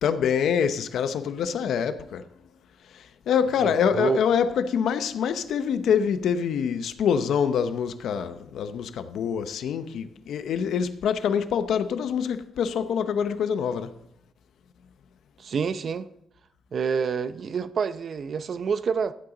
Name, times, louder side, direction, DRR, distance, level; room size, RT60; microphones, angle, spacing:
voice 1, 0.0-2.2 3.3-13.9, left 7 dB, 80° left, 0.8 m, -25 dB
voice 2, 3.6-4.2 15.4-16.1 16.7-19.1, right 6 dB, 50° right, 0.7 m, -27 dB
15.0 x 8.7 x 3.9 m
cardioid pair, 125°, 0 cm